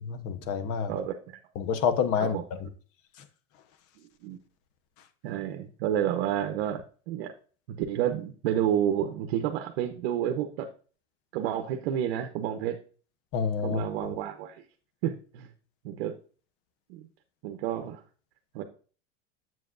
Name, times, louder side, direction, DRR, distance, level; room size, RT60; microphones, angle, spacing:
voice 1, 0.0-0.9 1.5-2.7 13.3-14.1, left 7 dB, 45° left, 1.0 m, -28 dB
voice 2, 0.9-1.4 2.2-2.4 4.0-4.4 5.2-7.3 7.7-10.7 11.3-12.8 13.6-14.6 15.0-15.5 15.8-16.2 16.9-17.1 17.4-18.0 18.5-18.6, right 10 dB, 75° right, 0.9 m, -30 dB
7.9 x 7.5 x 2.6 m
supercardioid pair, 140°, 31 cm